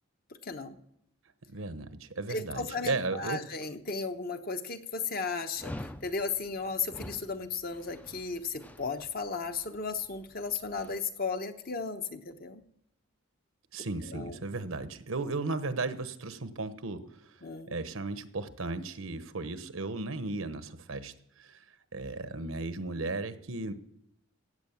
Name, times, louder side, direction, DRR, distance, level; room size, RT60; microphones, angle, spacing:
voice 1, 0.4-0.8 2.3-12.6 14.1-14.4 17.4-17.8, left 4 dB, 45° left, 7 dB, 1.0 m, -35 dB
voice 2, 1.5-3.4 13.7-17.1 17.7-21.1 21.4-21.6 21.9-23.7, right 3 dB, 80° right, 11 dB, 1.1 m, -35 dB
Dog, 5.6-11.0, left 1 dB, 5° left, 0.4 m, -47 dB
16.0 x 8.7 x 7.2 m, 0.75 s
head